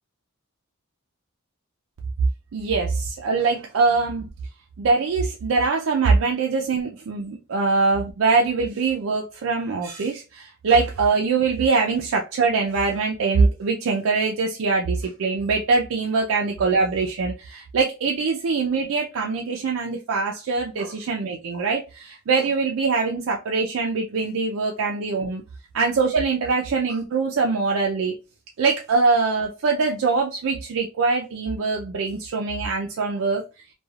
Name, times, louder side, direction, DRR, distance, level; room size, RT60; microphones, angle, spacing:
voice 1, 2.5-4.3 4.8-25.4 25.7-28.1 28.6-33.4, right 4 dB, 70° right, 0.4 m, -23 dB
3.2 x 2.2 x 2.3 m
head